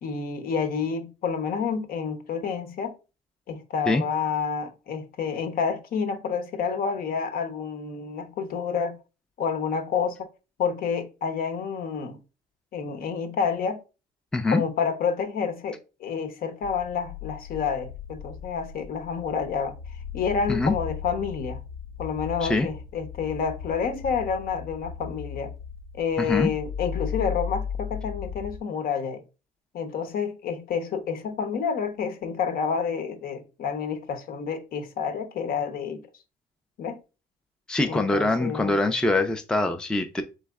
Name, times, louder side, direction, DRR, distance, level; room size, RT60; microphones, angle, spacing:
voice 1, 0.0-2.9 3.5-9.0 9.4-10.3 10.6-12.2 12.7-13.8 14.5-19.7 20.1-21.6 22.0-25.5 25.9-29.2 29.7-36.0 36.8-37.0 37.9-38.8, left 6 dB, 60° left, 0.9 m, -29 dB
sound 1, 16.6-28.6, left 7 dB, 75° left, 0.5 m, -37 dB
voice 2, 26.2-26.5 37.7-40.2, left 2 dB, 5° left, 0.4 m, -23 dB
4.1 x 3.2 x 3.5 m
cardioid pair, 110°, 17 cm